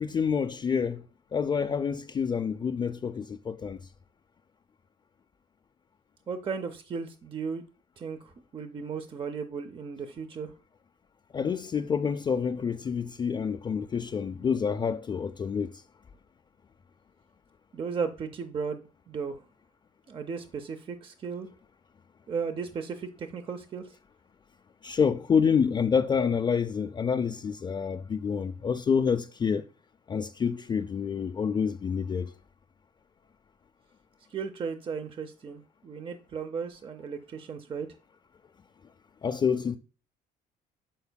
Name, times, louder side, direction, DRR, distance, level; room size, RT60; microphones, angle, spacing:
voice 1, 0.0-1.0 1.3-3.8 11.3-15.7 24.8-29.6 30.1-32.3 39.2-39.8, left 6 dB, 25° left, 0.4 m, -27 dB
voice 2, 6.3-7.6 8.0-10.5 17.7-19.4 20.1-21.5 22.3-23.9 34.3-37.9, right 5 dB, 30° right, 0.6 m, -35 dB
11.0 x 4.4 x 2.2 m
cardioid pair, 110°, 17 cm